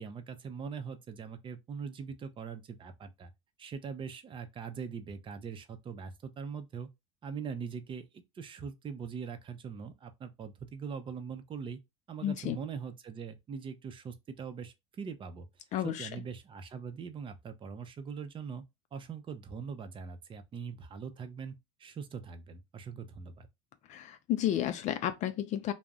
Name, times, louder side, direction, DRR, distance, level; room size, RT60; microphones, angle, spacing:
voice 1, 0.0-3.3 3.6-6.9 7.2-11.8 12.1-15.5 15.8-18.6 18.9-23.5, right 6 dB, 35° right, 0.6 m, -42 dB
voice 2, 12.2-12.6 15.7-16.1 23.9-25.7, left 11 dB, 50° left, 0.4 m, -32 dB
2.4 x 2.1 x 3.5 m
supercardioid pair, 90°, 16 cm